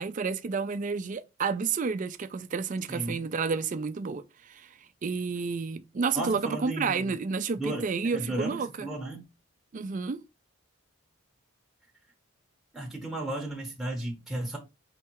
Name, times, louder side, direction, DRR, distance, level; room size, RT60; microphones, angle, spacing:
voice 1, 0.0-4.7 5.0-8.9 9.7-10.2, right 5 dB, 35° right, 0.3 m, -30 dB
voice 2, 2.9-3.2 6.1-7.1 7.6-9.3 12.7-14.6, right 1 dB, ahead, 0.8 m, -34 dB
4.6 x 3.2 x 3.0 m
head